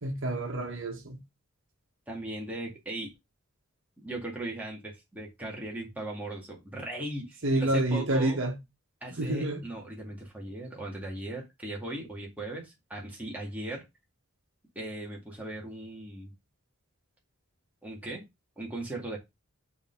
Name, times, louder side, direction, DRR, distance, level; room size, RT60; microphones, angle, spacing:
voice 1, 0.0-1.2 7.4-8.5 9.1-9.6, right 1 dB, 60° right, 1.5 m, -28 dB
voice 2, 2.1-3.1 4.0-8.4 9.0-13.9 14.8-16.3 17.8-18.2 18.6-19.2, right 1 dB, 5° right, 2.0 m, -38 dB
5.4 x 3.8 x 5.2 m
head